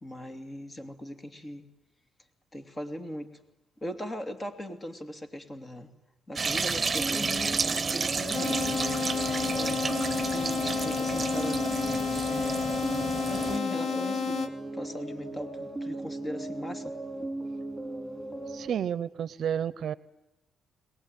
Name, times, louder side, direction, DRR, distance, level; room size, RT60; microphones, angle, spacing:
voice 1, 0.0-1.6 2.5-3.3 3.8-5.9 6.3-11.6 12.3-12.8 13.2-14.4 14.7-16.9, equal, 25° left, 7 dB, 2.8 m, -39 dB
sound 1, 6.4-13.6, right 4 dB, 30° right, 1.2 m, -31 dB
sound 2, 7.0-18.7, right 2 dB, 10° right, 4.2 m, -37 dB
sound 3, 8.3-14.5, left 6 dB, 60° left, 2.3 m, -31 dB
voice 2, 18.5-19.9, right 8 dB, 65° right, 17 dB, 0.8 m, -31 dB
22.5 x 19.0 x 9.3 m, 0.99 s
cardioid pair, 90°, 0 cm